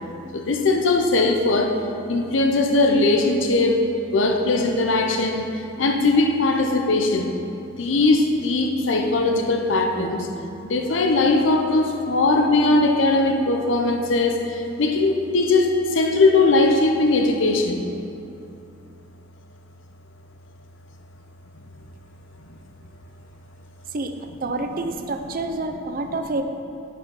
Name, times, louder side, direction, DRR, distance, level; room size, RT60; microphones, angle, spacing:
voice 1, 0.3-1.8 2.1-3.8 4.1-7.3 7.8-10.3 10.6-17.8 22.5-22.6, left 2 dB, 80° left, 3 dB, 0.7 m, -20 dB
voice 2, 24.4-26.4, right 2 dB, 50° right, 7 dB, 0.5 m, -27 dB
9.1 x 5.0 x 5.3 m, 2.6 s
head